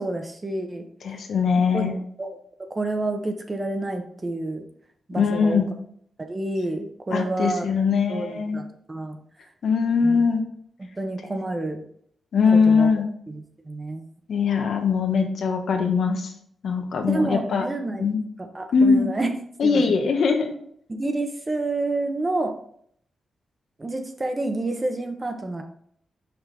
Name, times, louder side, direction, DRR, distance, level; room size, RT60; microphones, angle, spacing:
voice 1, 0.0-0.9 1.7-2.3 2.7-4.6 5.1-5.6 6.2-7.7 8.1-9.2 10.0-10.2 11.0-11.8 12.7-12.9 13.3-14.1 17.0-18.1 18.4-19.9 20.9-22.5 23.8-25.6, right 2 dB, 20° right, 5 dB, 0.8 m, -29 dB
voice 2, 1.0-1.9 5.2-5.7 7.1-8.6 9.6-10.4 12.3-13.0 14.3-16.3 16.6-17.6 18.0-18.2 18.7-19.1 19.6-20.5, left 5 dB, 70° left, 4 dB, 1.1 m, -21 dB
5.8 x 5.7 x 3.4 m, 0.65 s
wide cardioid pair, 145°, 0 cm